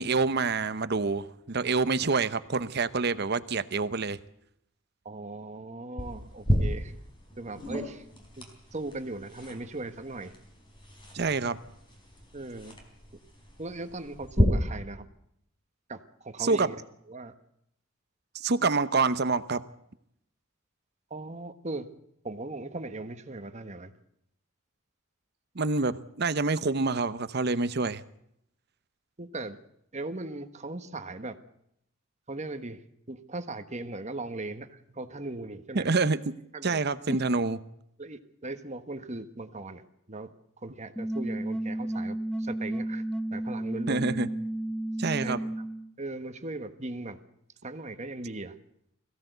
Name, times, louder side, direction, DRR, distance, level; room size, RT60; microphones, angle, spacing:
voice 1, 0.0-4.2 11.1-11.6 16.4-16.7 18.3-19.6 25.6-28.0 35.7-36.4 36.6-37.6 43.9-44.3 45.0-45.4, right 4 dB, 55° right, 14 dB, 0.8 m, -27 dB
voice 2, 5.0-6.9 7.4-8.0 8.4-10.3 12.3-12.8 13.6-15.1 15.9-16.8 17.1-17.3 21.1-21.9 22.2-23.9 29.2-29.6 29.9-31.4 32.3-32.8 33.1-35.9 36.5-36.8 37.1-37.2 38.0-39.8 40.1-40.3 40.6-43.0 43.3-44.2 45.2-45.5 46.0-47.2 47.6-48.5, right 2 dB, 35° right, 9 dB, 1.3 m, -38 dB
sound 1, 6.0-14.4, equal, 25° left, 4.2 m, -33 dB
sound 2, 41.0-45.9, right 1 dB, 5° left, 0.7 m, -32 dB
21.5 x 16.0 x 8.0 m, 0.75 s
head